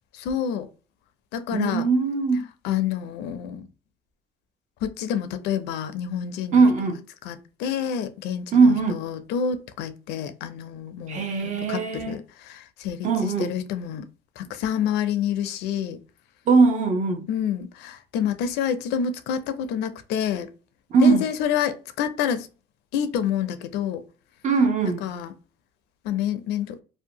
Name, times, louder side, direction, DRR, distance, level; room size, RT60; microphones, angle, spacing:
voice 1, 0.1-0.7 1.3-1.9 2.6-3.7 4.8-6.7 7.2-14.0 14.4-16.0 17.3-20.5 21.0-22.5 22.9-24.0 25.0-25.3 26.0-26.8, left 8 dB, 85° left, 0.4 m, -28 dB
voice 2, 1.5-2.4 6.5-7.0 8.5-9.0 11.1-12.2 13.0-13.5 16.5-17.3 20.9-21.3 24.4-25.0, right 4 dB, 45° right, 0.7 m, -20 dB
2.7 x 2.1 x 2.7 m
cardioid pair, 110°, 17 cm